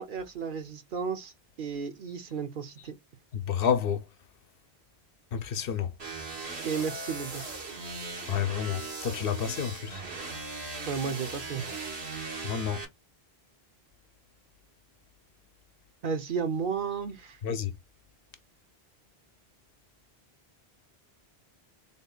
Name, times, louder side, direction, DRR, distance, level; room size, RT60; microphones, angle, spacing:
voice 1, 0.0-1.3 1.6-3.0 6.6-7.4 10.9-11.9 16.0-17.4, right 6 dB, 60° right, 0.8 m, -33 dB
voice 2, 3.5-4.0 5.3-5.9 8.3-10.0 12.4-12.8 17.4-17.7, left 8 dB, 70° left, 0.8 m, -29 dB
sound 1, 6.0-12.8, right 3 dB, 85° right, 1.7 m, -38 dB
3.7 x 2.2 x 3.8 m
omnidirectional pair, 1.0 m